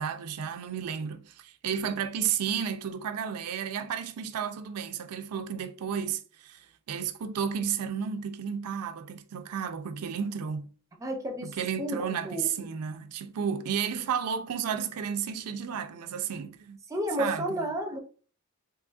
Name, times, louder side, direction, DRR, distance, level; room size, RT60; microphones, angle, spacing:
voice 1, 0.0-10.7 11.4-16.8 17.2-17.7, right 7 dB, 80° right, 0.4 m, -32 dB
voice 2, 11.0-11.5 11.8-12.7 16.9-18.0, equal, 15° right, 0.4 m, -32 dB
3.8 x 2.9 x 2.4 m
head